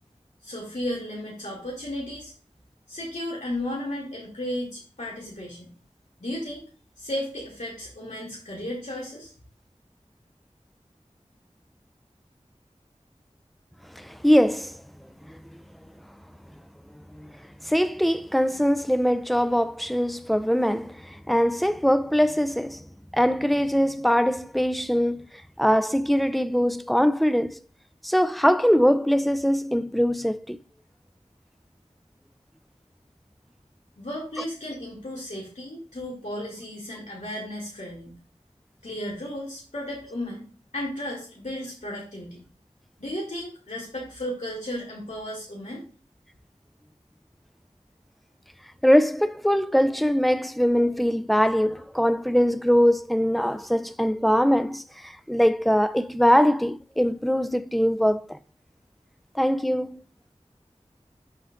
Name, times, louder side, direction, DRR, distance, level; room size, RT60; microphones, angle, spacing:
voice 1, 0.4-2.3 2.9-5.7 6.2-6.6 7.0-9.3 34.0-38.2 38.8-40.5 40.7-42.4 43.0-45.8, left 1 dB, 80° left, 2.3 m, -34 dB
voice 2, 13.9-14.8 15.3-15.4 17.2-17.3 17.6-22.8 23.1-25.3 25.6-27.6 28.0-30.6 48.8-58.4 59.3-60.0, equal, ahead, 0.4 m, -22 dB
12.5 x 4.6 x 2.5 m
wide cardioid pair, 45°, 12 cm